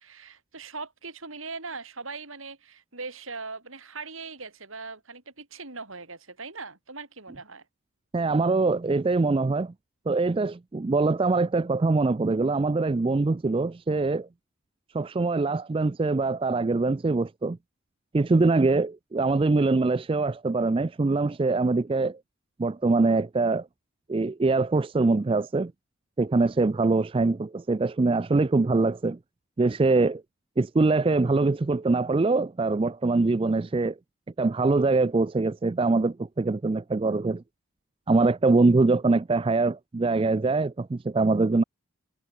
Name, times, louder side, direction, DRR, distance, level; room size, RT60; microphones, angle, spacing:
voice 1, 0.0-7.6, right 4 dB, 75° right, 7.0 m, -40 dB
voice 2, 8.1-9.7 10.1-14.3 14.9-17.6 18.1-22.2 22.6-23.7 24.1-25.7 26.2-29.2 29.6-30.2 30.6-34.0 34.4-37.4 38.1-41.6, right 3 dB, 25° right, 0.3 m, -23 dB
head